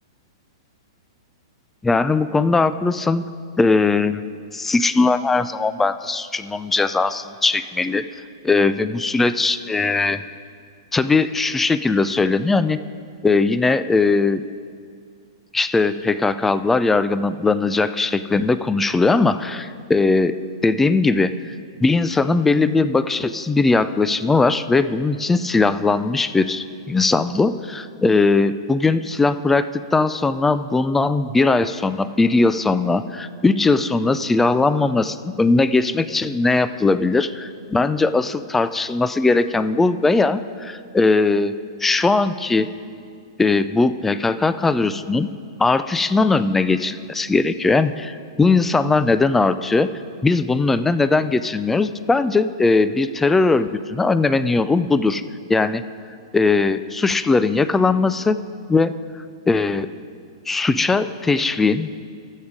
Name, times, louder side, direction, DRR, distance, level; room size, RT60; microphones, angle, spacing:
voice 1, 1.8-3.3 3.6-4.2 4.5-8.0 8.4-10.2 10.9-12.8 13.2-14.4 15.5-20.4 20.6-21.5 21.8-42.7 43.4-45.3 45.6-49.9 50.2-55.2 55.5-55.8 56.3-58.4 58.7-58.9 59.5-59.9 60.5-62.0, left 3 dB, 10° left, 13 dB, 0.3 m, -19 dB
13.0 x 7.4 x 5.0 m, 2.2 s
hypercardioid pair, 130°, 2 cm